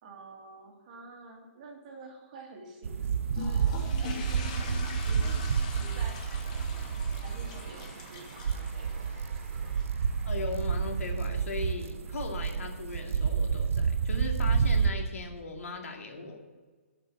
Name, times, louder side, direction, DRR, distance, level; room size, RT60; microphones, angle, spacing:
voice 1, 0.0-5.4 5.7-9.7, right 3 dB, 30° right, 0 dB, 2.3 m, -49 dB
sound 1, 2.8-14.9, right 6 dB, 70° right, 0.7 m, -29 dB
sound 2, 3.3-9.9, left 5 dB, 30° left, 1.3 m, -43 dB
Cheering / Applause / Crowd, 3.8-12.4, right 3 dB, 15° right, 2.5 m, -54 dB
voice 2, 10.3-16.4, left 3 dB, 80° left, 3 dB, 2.3 m, -38 dB
11.0 x 5.9 x 8.7 m, 1.4 s
hypercardioid pair, 175°, 8 cm